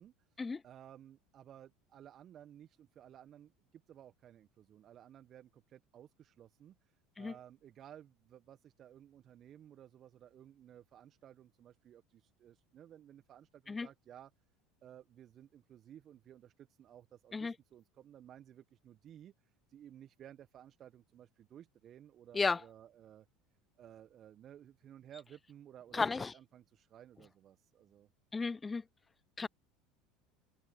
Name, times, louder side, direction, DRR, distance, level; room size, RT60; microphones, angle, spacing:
voice 1, 0.0-14.3 14.8-23.3 23.8-28.1, right 10 dB, 45° right, 1.3 m, -56 dB
voice 2, 25.9-26.3 28.3-28.8 29.4-29.5, left 4 dB, 20° left, 0.5 m, -33 dB
hypercardioid pair, 75°, 0 cm